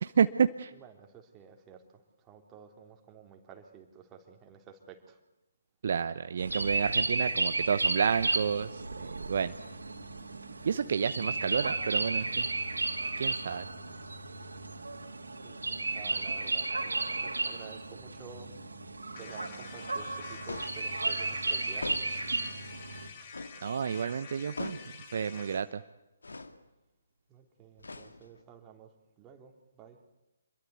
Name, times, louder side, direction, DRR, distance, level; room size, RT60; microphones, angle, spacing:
voice 1, 0.0-0.7 5.8-9.5 10.6-12.5 13.2-13.6 23.6-24.8 25.1-25.8, right 7 dB, 55° right, 10 dB, 0.9 m, -30 dB
voice 2, 0.7-1.8 2.2-5.2 15.4-18.5 19.2-22.1 27.3-28.9 29.2-30.0, right 7 dB, 20° right, 3 dB, 3.3 m, -52 dB
sound 1, 6.4-23.1, right 3 dB, 75° right, 3.3 m, -33 dB
sound 2, 19.2-25.7, left 5 dB, 40° left, 4.3 m, -48 dB
sound 3, 20.5-20.9 21.8-22.3 23.3-23.6 24.6-25.0 26.2-26.6 27.8-28.4, left 3 dB, 75° left, 2.0 m, -41 dB
27.0 x 22.0 x 8.3 m, 0.98 s
figure-of-eight pair, 135°, 0 cm